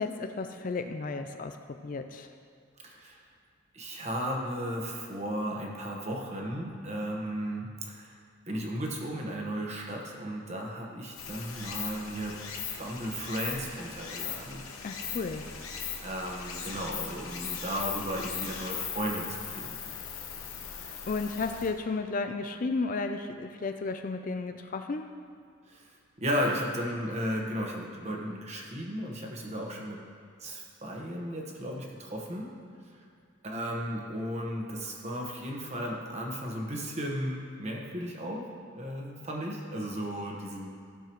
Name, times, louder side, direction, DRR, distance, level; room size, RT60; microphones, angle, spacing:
voice 1, 0.0-2.3 14.8-15.4 21.1-25.1, left 3 dB, 40° left, 7 dB, 0.4 m, -33 dB
voice 2, 2.8-3.2 3.7-8.2 8.5-12.4 12.8-14.7 16.0-19.9 25.7-30.0 30.4-32.5 32.9-33.1 33.4-38.4 38.7-40.7, equal, 30° right, -1 dB, 1.2 m, -35 dB
Stream, 11.2-21.7, left 7 dB, 85° left, 1.1 m, -39 dB
15.5 x 6.9 x 3.1 m, 2.3 s
head